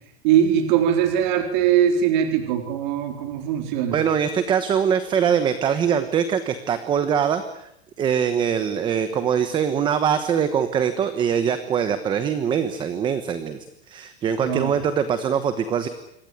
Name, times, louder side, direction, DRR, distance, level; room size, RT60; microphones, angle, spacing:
voice 1, 0.2-4.0 14.4-14.7, right 9 dB, 45° right, 5 dB, 3.9 m, -21 dB
voice 2, 3.9-7.7 8.0-13.6 13.9-15.9, right 8 dB, 15° right, 10 dB, 1.1 m, -23 dB
27.0 x 23.5 x 9.4 m, 0.76 s
supercardioid pair, 175°, 33 cm